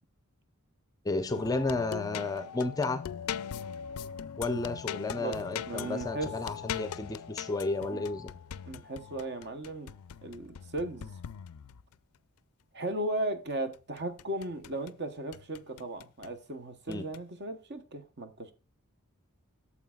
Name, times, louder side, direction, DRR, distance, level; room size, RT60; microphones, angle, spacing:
voice 1, 1.0-3.0 4.4-8.3 16.9-17.0, left 3 dB, 15° left, 0.5 m, -32 dB
sound 1, 1.3-11.9 13.7-15.0 15.3-16.3 16.9-17.2, left 8 dB, 75° left, 0.4 m, -41 dB
voice 2, 5.7-6.3 7.9-8.0 8.7-9.9 10.2-11.1 12.7-18.5, right 1 dB, 50° right, 0.9 m, -36 dB
9.1 x 7.2 x 2.3 m
head